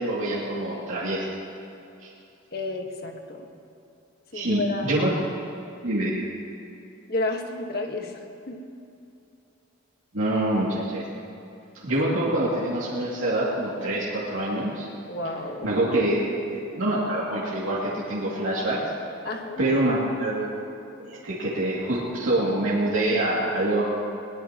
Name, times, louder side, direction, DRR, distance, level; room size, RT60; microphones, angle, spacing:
voice 1, 0.0-1.4 2.0-2.1 4.3-5.1 5.8-6.2 10.1-11.0 11.8-14.9 15.6-16.2 16.5-18.9 19.6-20.6 21.0-23.8, right 1 dB, 85° right, -7 dB, 2.6 m, -25 dB
voice 2, 2.5-3.5 4.3-5.0 7.1-8.2 8.5-8.6 15.1-15.8 19.2-19.6, left 2 dB, 50° left, 2 dB, 1.5 m, -31 dB
21.5 x 19.0 x 3.0 m, 2.7 s
head